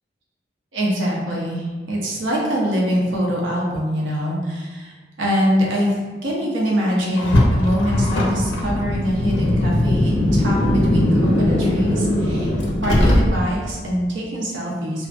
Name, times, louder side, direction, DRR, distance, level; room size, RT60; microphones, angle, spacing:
voice 1, 0.7-6.0 6.2-12.5 12.8-15.1, equal, 90° right, -3 dB, 0.6 m, -23 dB
Car, 7.2-13.7, left 1 dB, 80° left, 0.5 m, -19 dB
2.4 x 2.1 x 2.4 m, 1.3 s
head